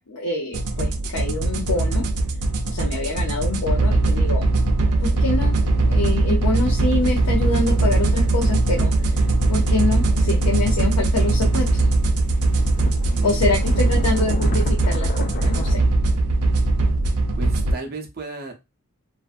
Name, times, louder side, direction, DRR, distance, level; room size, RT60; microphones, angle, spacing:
voice 1, 0.0-2.0 2.7-4.5 5.0-5.5 5.9-11.9 13.2-15.8, left 3 dB, 80° left, 0 dB, 0.6 m, -26 dB
sound 1, 0.5-17.7, right 2 dB, 85° right, 0.5 m, -20 dB
sound 2, 6.8-12.0 12.3-15.7, left 4 dB, 40° left, 0.3 m, -37 dB
voice 2, 12.8-14.0 17.4-18.5, right 3 dB, 45° right, 2 dB, 0.6 m, -35 dB
2.6 x 2.2 x 2.4 m, 0.24 s
head